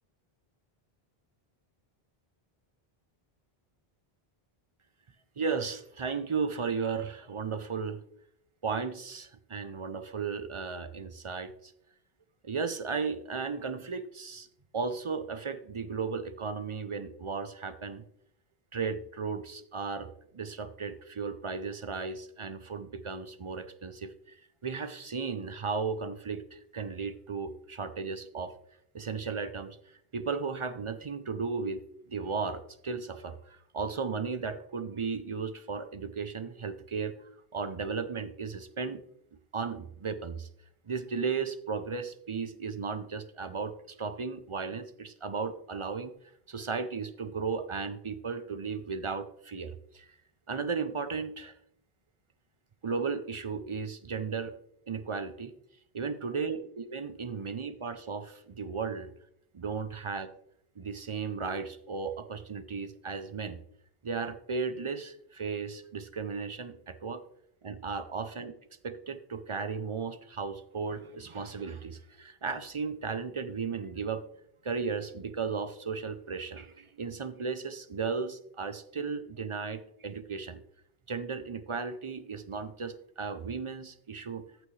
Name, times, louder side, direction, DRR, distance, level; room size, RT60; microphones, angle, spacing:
voice 1, 5.4-8.0 8.6-11.7 12.4-14.5 14.7-18.0 18.7-24.4 24.6-28.5 28.9-31.8 32.1-39.0 39.5-40.5 40.9-46.1 46.5-50.1 50.5-51.6 52.8-54.5 54.9-55.5 55.9-59.1 59.5-60.3 60.8-63.6 64.0-67.2 67.6-68.5 68.8-74.2 74.6-80.6 81.1-84.4, right 5 dB, 40° right, 11 dB, 0.5 m, -35 dB
14.0 x 6.1 x 3.2 m, 0.75 s
omnidirectional pair, 1.0 m